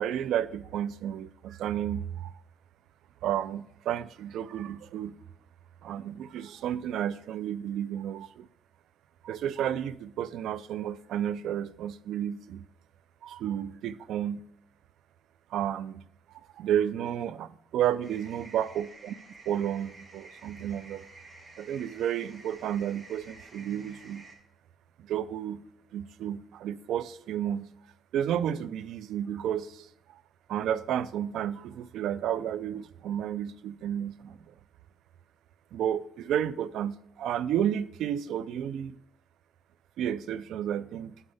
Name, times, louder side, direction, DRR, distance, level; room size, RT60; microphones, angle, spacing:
voice 1, 0.0-2.3 3.2-5.1 5.8-8.5 9.2-12.7 13.2-14.4 15.5-16.0 16.3-19.2 19.5-21.1 21.6-24.2 25.0-25.6 25.9-27.7 28.1-30.2 30.5-34.5 35.7-39.0 40.0-41.2, right 10 dB, 80° right, 0.4 m, -32 dB
sound 1, 18.0-24.3, right 2 dB, 20° right, 2.0 m, -51 dB
12.0 x 5.6 x 3.4 m
cardioid pair, 90°, 0 cm